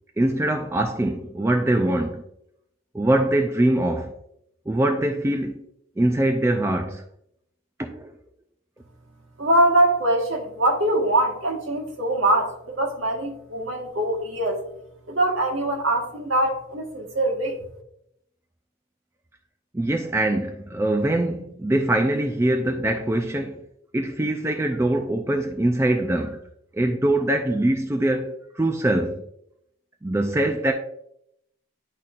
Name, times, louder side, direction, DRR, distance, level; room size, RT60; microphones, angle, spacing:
voice 1, 0.2-2.2 2.9-4.1 4.7-5.6 6.0-7.0 7.8-8.1 19.7-23.6 23.9-26.4 26.7-29.2 30.0-30.7, right 1 dB, 10° right, 0.3 m, -23 dB
voice 2, 9.4-14.6 15.1-17.6, right 1 dB, 60° right, 1.5 m, -23 dB
10.5 x 4.2 x 2.4 m
head